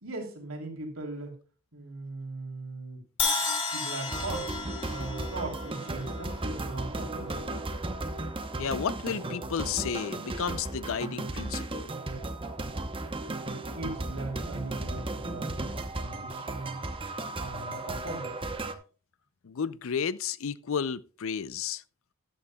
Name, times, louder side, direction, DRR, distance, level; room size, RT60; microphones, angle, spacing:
voice 1, 0.0-1.3 1.7-3.0 3.7-4.5 4.8-7.4 13.7-16.8 17.4-18.3, right 2 dB, 70° right, 3.2 m, -39 dB
Crash cymbal, 3.2-7.2, left 4 dB, 25° left, 3.0 m, -33 dB
sound 1, 4.1-18.7, right 2 dB, 25° right, 0.9 m, -35 dB
voice 2, 8.6-11.9 19.4-21.8, left 6 dB, 65° left, 0.5 m, -32 dB
13.0 x 11.5 x 2.3 m
head